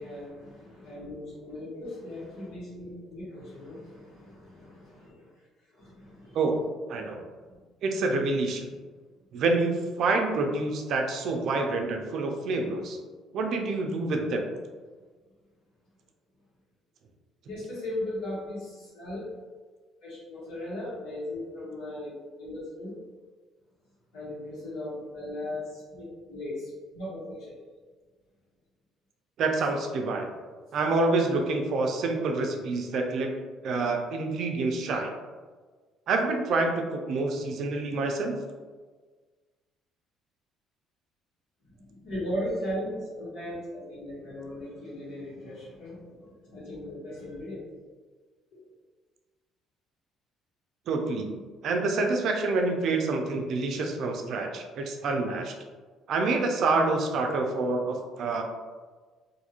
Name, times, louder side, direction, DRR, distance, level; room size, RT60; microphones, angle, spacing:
voice 1, 0.0-5.3 5.7-6.4 7.5-7.6 17.5-19.3 20.0-22.9 24.1-27.5 41.8-47.6 48.5-48.6, left 1 dB, 80° left, -9 dB, 1.3 m, -37 dB
voice 2, 7.8-8.7 9.3-13.0 13.3-14.5 29.4-30.3 30.7-33.3 33.6-35.1 36.1-38.4 50.9-51.3 51.6-55.5 56.1-58.4, right 3 dB, 60° right, 3 dB, 0.4 m, -27 dB
2.5 x 2.4 x 2.8 m, 1.4 s
cardioid pair, 120°, 0 cm